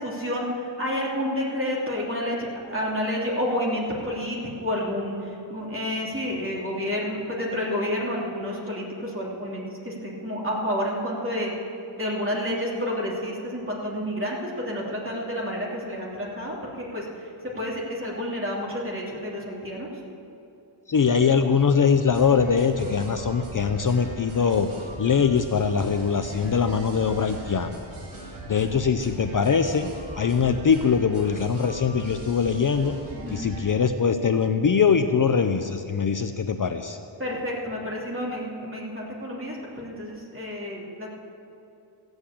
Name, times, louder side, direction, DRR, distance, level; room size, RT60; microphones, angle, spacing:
voice 1, 0.0-11.5 11.9-17.0 17.6-19.9 33.1-33.5 37.2-41.1, equal, 25° right, -4 dB, 3.2 m, -30 dB
voice 2, 20.9-24.7 25.0-27.8 28.5-29.9 30.2-32.9 33.3-37.0, left 6 dB, 45° left, 8 dB, 0.6 m, -22 dB
sound 1, 22.0-33.7, right 2 dB, 80° right, 3.2 m, -40 dB
15.0 x 8.0 x 8.6 m, 2.7 s
wide cardioid pair, 120°, 47 cm